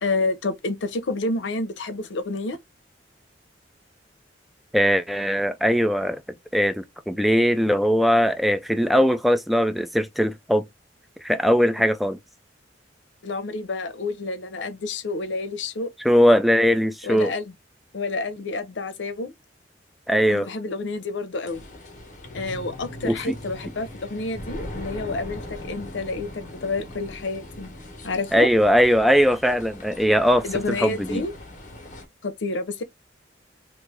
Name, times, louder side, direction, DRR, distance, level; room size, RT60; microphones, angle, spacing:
voice 1, 0.0-2.6 13.2-15.9 17.0-17.5 17.9-19.3 20.3-21.7 22.3-27.7 28.0-28.7 30.4-31.3 32.2-32.8, left 3 dB, 90° left, 0.7 m, -29 dB
voice 2, 4.7-6.2 6.5-10.7 11.2-12.2 16.0-17.3 20.1-20.5 23.0-23.3 28.3-31.2, equal, ahead, 0.3 m, -20 dB
sound 1, 21.5-32.1, left 1 dB, 45° left, 1.2 m, -40 dB
3.1 x 2.5 x 3.4 m
head